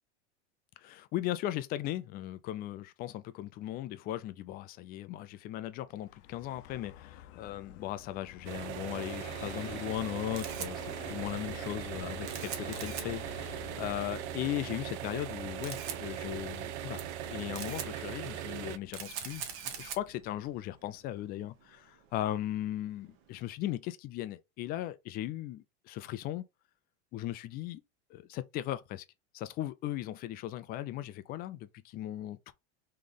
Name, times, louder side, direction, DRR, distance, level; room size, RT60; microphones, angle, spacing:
voice 1, 0.8-26.4 27.1-27.8 28.1-29.0 29.3-32.5, left 13 dB, 30° left, 0.4 m, -38 dB
Vehicle, 5.9-21.4, left 10 dB, 70° left, 0.8 m, -50 dB
sound 1, 8.4-18.8, right 11 dB, 70° right, 0.7 m, -40 dB
Camera, 10.0-23.3, right 8 dB, 45° right, 1.1 m, -45 dB
3.6 x 3.2 x 3.8 m
supercardioid pair, 145°, 34 cm